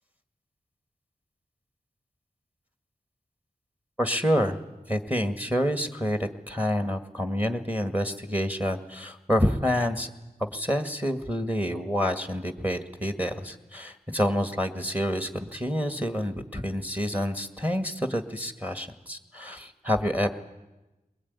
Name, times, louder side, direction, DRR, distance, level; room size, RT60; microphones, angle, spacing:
voice 1, 4.0-4.6 4.9-10.1 10.4-20.3, equal, 10° right, 9 dB, 1.8 m, -28 dB
22.5 x 21.0 x 9.6 m, 1.1 s
wide cardioid pair, 80°, 15 cm